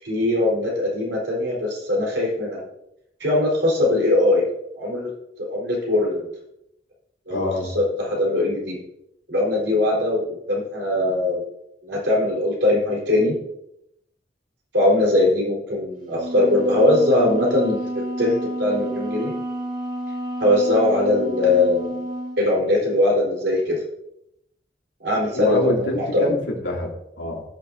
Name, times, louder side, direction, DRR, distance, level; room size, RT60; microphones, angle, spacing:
voice 1, 0.0-2.6 3.2-4.5 4.8-5.1 5.4-6.3 7.3-7.5 7.7-8.8 9.3-11.4 11.8-13.4 14.7-17.8 18.2-18.3 18.6-19.3 20.4-22.0 22.4-23.8 25.0-25.8 26.1-26.4, left 1 dB, 80° right, -3 dB, 4.3 m, -21 dB
voice 2, 7.3-7.7 25.3-27.4, left 1 dB, 90° left, -1 dB, 2.7 m, -26 dB
Wind instrument woodwind instrument, 16.2-22.4, right 1 dB, 45° right, 1.9 m, -30 dB
18.5 x 6.9 x 2.7 m, 0.80 s
head